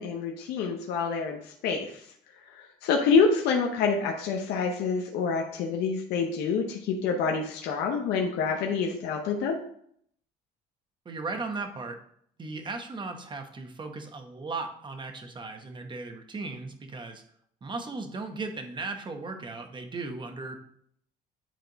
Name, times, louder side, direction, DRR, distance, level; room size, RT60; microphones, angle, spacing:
voice 1, 0.0-2.1 2.5-9.6, left 5 dB, 85° left, 2 dB, 0.9 m, -27 dB
voice 2, 11.0-12.0 12.4-17.2 17.6-20.6, right 3 dB, 30° right, 6 dB, 1.0 m, -36 dB
9.3 x 3.4 x 4.0 m, 0.66 s
cardioid pair, 110°, 17 cm